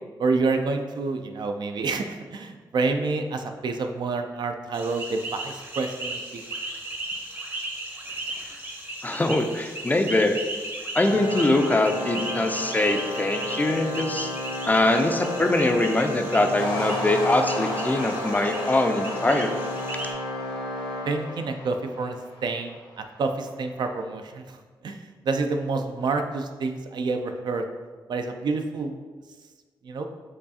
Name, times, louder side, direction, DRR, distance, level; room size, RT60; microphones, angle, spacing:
voice 1, 0.2-2.1 2.3-6.4 21.1-24.4 24.8-25.0 25.2-27.6 28.1-28.9 29.8-30.1, right 3 dB, 60° right, 6 dB, 0.3 m, -28 dB
sound 1, 4.7-20.1, right 1 dB, 25° right, 0.7 m, -36 dB
voice 2, 9.0-10.4 10.9-14.3 14.7-19.5, left 2 dB, 20° left, 5 dB, 0.3 m, -23 dB
Organ, 11.0-21.8, left 1 dB, 80° right, 1.1 m, -33 dB
sound 2, 16.6-23.1, left 1 dB, 70° left, 0.8 m, -35 dB
4.5 x 2.4 x 2.7 m, 1.4 s
cardioid pair, 60°, 8 cm